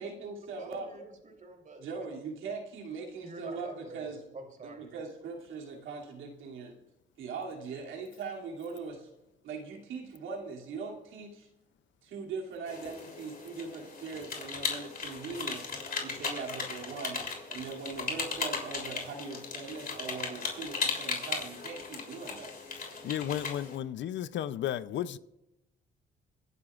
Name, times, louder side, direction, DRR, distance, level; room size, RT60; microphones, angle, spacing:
voice 1, 0.0-1.1 1.8-4.2 4.6-6.8 7.2-9.1 9.4-11.5 12.0-15.6 16.0-22.5, right 4 dB, 85° right, 2.8 m, -41 dB
voice 2, 0.6-2.2 3.2-4.9, right 2 dB, 40° right, 3.5 m, -47 dB
sound 1, 12.7-23.8, left 4 dB, 45° left, 3.4 m, -37 dB
voice 3, 22.8-25.2, left 11 dB, 70° left, 0.6 m, -34 dB
26.0 x 11.0 x 2.5 m
cardioid pair, 90°, 20 cm